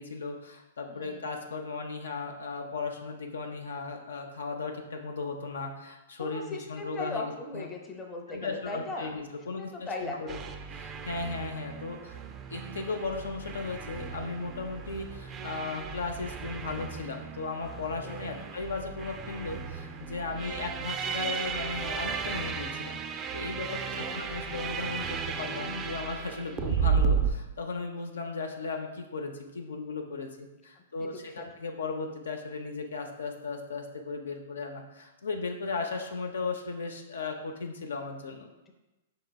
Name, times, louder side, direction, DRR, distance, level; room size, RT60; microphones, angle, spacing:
voice 1, 0.0-7.7 8.3-10.4 10.7-12.2 12.5-23.0 23.3-38.5, left 4 dB, 90° left, 3 dB, 0.6 m, -36 dB
voice 2, 0.9-1.3 6.2-9.2 9.5-10.4 18.0-18.4 20.3-20.5 23.7-24.2 26.5-26.7 31.0-31.1, left 2 dB, 20° left, 1 dB, 0.7 m, -39 dB
sound 1, 10.3-27.3, right 6 dB, 25° right, 0.3 m, -34 dB
5.1 x 3.8 x 2.3 m, 1.0 s
hypercardioid pair, 135°, 0 cm